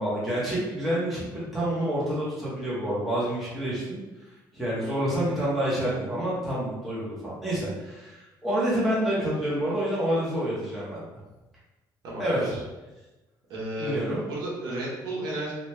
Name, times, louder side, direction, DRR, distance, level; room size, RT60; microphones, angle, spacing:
voice 1, 0.0-4.0 4.5-11.1 12.2-12.5 13.8-14.2, right 1 dB, ahead, -9 dB, 1.0 m, -28 dB
voice 2, 12.0-12.6 13.5-15.5, right 1 dB, 65° right, -5 dB, 1.0 m, -33 dB
3.0 x 2.3 x 3.1 m, 1.1 s
cardioid pair, 175°, 8 cm